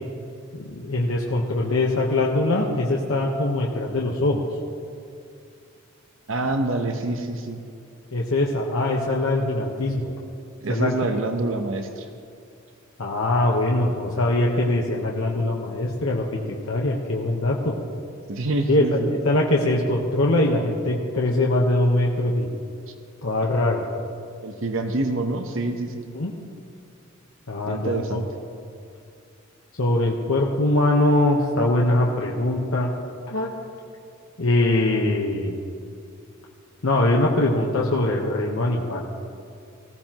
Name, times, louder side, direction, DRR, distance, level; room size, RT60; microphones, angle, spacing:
voice 1, 0.5-4.5 8.1-10.1 10.7-10.9 13.0-17.8 18.7-22.5 23.2-23.8 26.1-26.3 27.5-28.2 29.8-32.9 33.3-33.5 34.4-35.6 36.8-39.1, left 2 dB, 75° left, -2 dB, 1.2 m, -22 dB
voice 2, 6.3-7.6 10.6-12.1 18.3-19.1 22.9-23.0 24.4-26.1 27.7-28.3, right 2 dB, 65° right, 5 dB, 0.9 m, -26 dB
19.5 x 15.5 x 3.0 m, 2.4 s
head